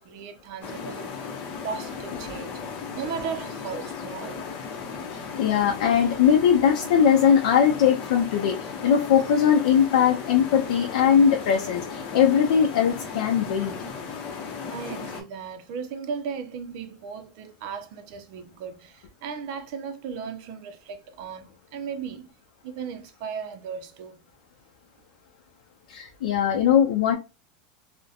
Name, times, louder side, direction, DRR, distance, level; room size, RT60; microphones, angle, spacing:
voice 1, 0.0-1.3 1.6-4.4 14.7-22.4 22.6-24.2, right 6 dB, 55° right, 0.5 m, -36 dB
sound 1, 0.6-15.2, left 5 dB, 40° left, 0.7 m, -36 dB
voice 2, 5.1-13.7 25.9-27.1, left 8 dB, 80° left, 0.5 m, -20 dB
2.7 x 2.1 x 2.3 m
supercardioid pair, 155°, 4 cm